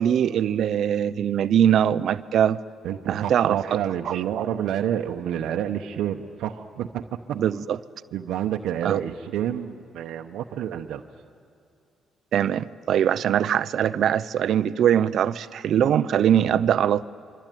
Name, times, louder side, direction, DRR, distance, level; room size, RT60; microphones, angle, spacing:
voice 1, 0.0-2.6 3.1-3.8 4.1-4.5 7.4-7.8 8.8-9.0 12.3-17.1, right 9 dB, 70° right, 15 dB, 0.6 m, -22 dB
voice 2, 2.8-7.4 8.1-11.1 16.4-16.7, right 10 dB, 85° right, 4 dB, 0.9 m, -29 dB
26.0 x 24.5 x 9.2 m, 2.5 s
cardioid pair, 90°, 0 cm